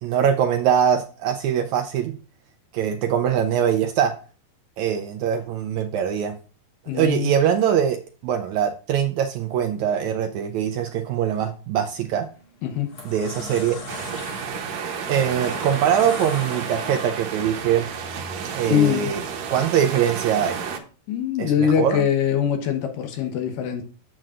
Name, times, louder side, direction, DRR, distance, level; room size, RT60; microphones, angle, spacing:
voice 1, 0.0-2.1 2.7-4.1 4.8-6.4 6.9-8.0 8.2-12.3 13.0-13.8 15.1-17.9 18.5-19.2 19.5-20.6 21.4-22.1, right 9 dB, 80° right, 7 dB, 1.6 m, -22 dB
voice 2, 6.9-7.3 12.6-12.9 18.7-19.1 21.1-23.8, left 9 dB, 75° left, 5 dB, 2.6 m, -22 dB
chair drag on tile, 12.0-12.2 12.7-17.4, left 2 dB, 50° left, 3.5 m, -37 dB
sound 1, 13.9-20.8, right 6 dB, 65° right, 1.9 m, -31 dB
9.3 x 7.5 x 2.5 m, 0.36 s
omnidirectional pair, 4.0 m